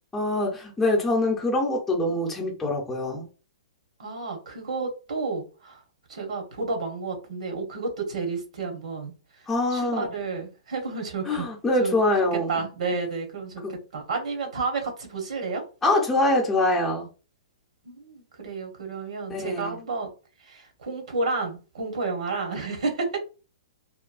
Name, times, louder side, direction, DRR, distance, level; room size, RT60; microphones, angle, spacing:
voice 1, 0.1-3.2 9.5-10.1 11.3-12.6 13.6-13.7 15.8-17.1 19.3-19.8, left 2 dB, 5° left, 0.7 m, -24 dB
voice 2, 4.0-5.8 6.1-11.4 11.8-12.0 12.3-15.6 17.8-20.1 20.4-23.1, right 4 dB, 85° right, 1.1 m, -31 dB
3.0 x 2.2 x 2.4 m
hypercardioid pair, 155°, 4 cm